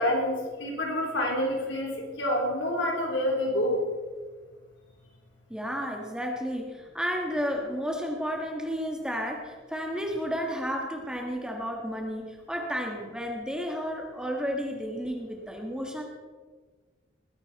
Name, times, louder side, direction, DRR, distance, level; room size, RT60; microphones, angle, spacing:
voice 1, 0.0-3.8, left 1 dB, 65° left, 0 dB, 3.6 m, -27 dB
voice 2, 5.5-16.0, equal, 5° right, 1 dB, 1.5 m, -32 dB
20.5 x 10.5 x 4.2 m, 1.4 s
head